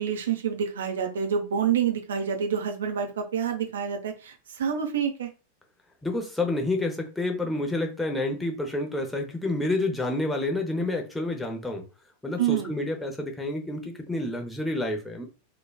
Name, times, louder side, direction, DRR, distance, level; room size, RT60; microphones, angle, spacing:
voice 1, 0.0-5.3 12.4-12.7, right 8 dB, 65° right, 3 dB, 0.7 m, -27 dB
voice 2, 6.0-11.8 12.2-15.2, left 2 dB, 5° left, 2 dB, 0.7 m, -29 dB
3.9 x 2.3 x 2.3 m, 0.31 s
figure-of-eight pair, 90°, 0 cm